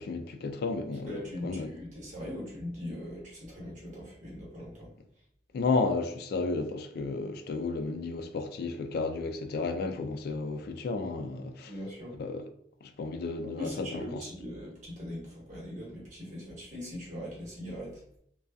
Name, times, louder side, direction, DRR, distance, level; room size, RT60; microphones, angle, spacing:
voice 1, 0.0-1.1 1.4-1.7 5.5-11.7 12.2-12.4 12.8-14.2, left 3 dB, 60° left, 0.3 m, -32 dB
voice 2, 1.1-4.9 11.7-12.1 13.6-18.0, equal, 45° right, 1.1 m, -40 dB
2.5 x 2.3 x 2.2 m
head